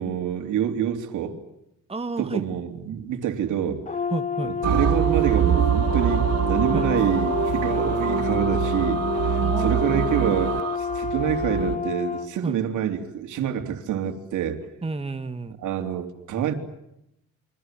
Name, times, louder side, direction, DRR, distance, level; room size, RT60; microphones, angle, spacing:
voice 1, 0.0-1.4 2.2-3.8 4.4-14.6 15.6-16.5, right 9 dB, 80° right, 3.5 m, -27 dB
voice 2, 1.9-2.4 4.1-4.5 6.7-6.9 9.4-10.3 12.4-12.6 14.8-15.6, right 3 dB, 20° right, 1.8 m, -31 dB
Brass instrument, 3.9-12.3, left 7 dB, 25° left, 1.4 m, -29 dB
sound 1, 4.6-11.8, right 9 dB, 55° right, 1.3 m, -24 dB
29.0 x 24.0 x 7.7 m
cardioid pair, 90°, 30 cm